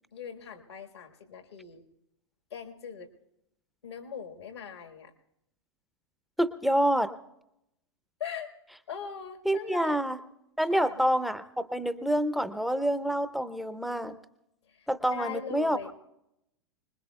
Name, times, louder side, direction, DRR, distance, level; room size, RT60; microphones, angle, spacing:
voice 1, 0.1-1.8 2.5-3.1 3.8-5.1 8.2-8.5 8.9-10.0 10.7-11.0 15.1-15.9, left 7 dB, 75° left, 4 dB, 1.6 m, -40 dB
voice 2, 6.4-7.1 9.4-10.2 10.6-14.1 14.9-15.9, equal, ahead, 13 dB, 0.6 m, -27 dB
25.0 x 20.5 x 2.3 m, 0.82 s
figure-of-eight pair, 95°, 14 cm